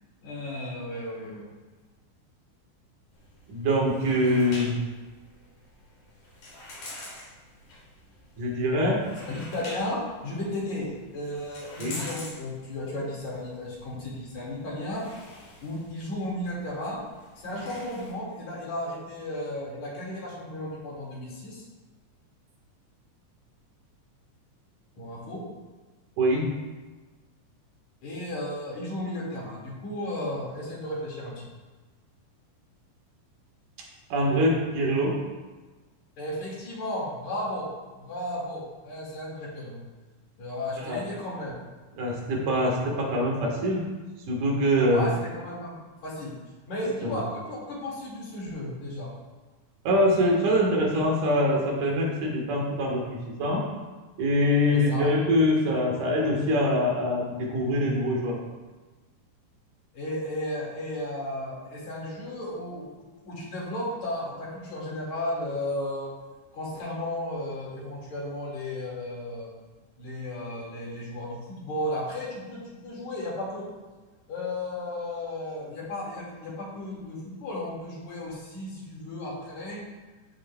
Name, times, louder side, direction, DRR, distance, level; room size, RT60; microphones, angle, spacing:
voice 1, 0.2-1.5 9.3-15.0 15.6-17.0 17.4-21.6 25.0-25.4 28.0-31.3 36.2-37.7 38.0-39.8 40.4-41.6 44.9-46.3 46.7-49.1 54.7-55.1 59.9-62.8 63.2-66.1 66.5-69.5 70.0-73.6 74.3-79.8, left 1 dB, 65° left, -5 dB, 3.5 m, -34 dB
sound 1, 3.1-18.1, left 1 dB, 85° left, 4.3 m, -46 dB
voice 2, 3.5-4.7 8.4-9.0 11.8-12.0 26.2-26.5 34.1-35.2 40.8-41.0 42.0-43.8 44.3-45.1 47.0-47.2 49.8-53.6 54.2-58.4, equal, 80° right, -2 dB, 3.2 m, -24 dB
14.5 x 6.5 x 2.4 m, 1.3 s
omnidirectional pair, 3.6 m